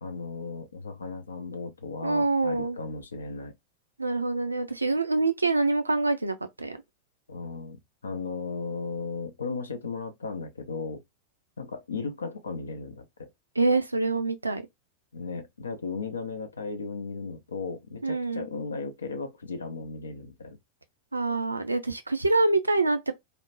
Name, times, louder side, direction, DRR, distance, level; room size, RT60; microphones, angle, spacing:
voice 1, 0.0-3.5 7.3-11.0 11.6-13.3 15.1-20.6, left 4 dB, 70° left, 0.4 m, -36 dB
voice 2, 2.0-2.8 4.0-6.8 13.6-14.6 18.0-18.5 21.1-23.1, right 3 dB, 80° right, 0.4 m, -25 dB
2.5 x 2.1 x 2.9 m
figure-of-eight pair, 90°, 0 cm